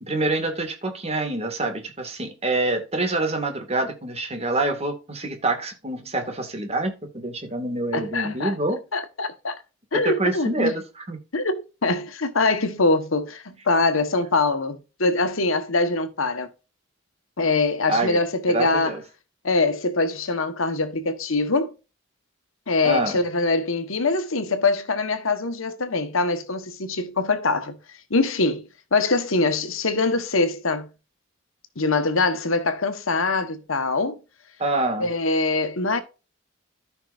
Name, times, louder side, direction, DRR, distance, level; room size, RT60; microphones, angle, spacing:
voice 1, 0.0-8.8 9.9-11.2 17.9-18.2 18.5-19.0 22.8-23.2 34.6-35.1, right 2 dB, 30° right, 2.1 m, -26 dB
voice 2, 7.9-8.5 8.9-9.6 9.9-10.7 11.3-16.5 17.4-18.9 19.4-21.7 22.7-27.8 28.1-30.9 31.8-34.2 35.0-36.0, left 3 dB, 85° left, 1.4 m, -23 dB
14.0 x 5.8 x 2.6 m
head